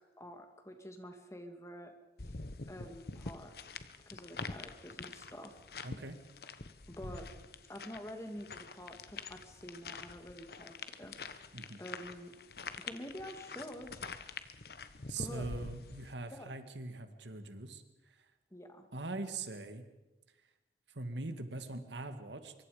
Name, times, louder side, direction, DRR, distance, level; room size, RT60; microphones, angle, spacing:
voice 1, 0.0-1.9 2.7-3.5 4.1-5.6 6.9-7.2 7.7-11.1 11.8-12.3 12.7-13.9 15.1-15.5 16.3-16.5 18.5-18.9, equal, 15° left, 5 dB, 2.2 m, -47 dB
sound 1, 2.2-16.1, left 4 dB, 60° left, 1.2 m, -46 dB
voice 2, 5.8-6.2 11.5-11.8 15.1-17.8 18.9-19.9 20.9-22.5, right 2 dB, 85° right, 9 dB, 2.0 m, -42 dB
24.5 x 23.5 x 5.1 m, 1.0 s
head